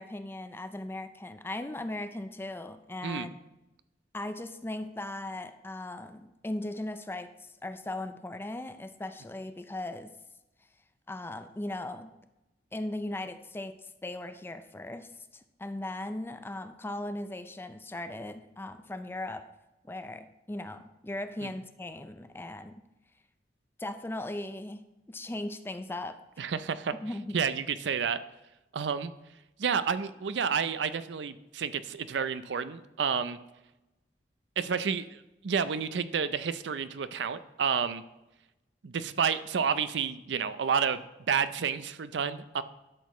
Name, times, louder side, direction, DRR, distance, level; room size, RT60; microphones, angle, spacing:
voice 1, 0.0-3.4 4.1-10.1 11.1-12.1 12.7-19.5 19.8-22.7 23.8-24.8 25.1-26.2 27.0-27.4, left 1 dB, 15° left, 10 dB, 0.4 m, -38 dB
voice 2, 26.4-26.9 27.3-28.2 28.7-29.1 29.6-33.4 34.6-35.2 35.4-38.0 38.8-41.0 41.3-42.6, right 6 dB, 90° right, 13 dB, 0.5 m, -30 dB
12.0 x 6.4 x 3.1 m, 0.97 s
head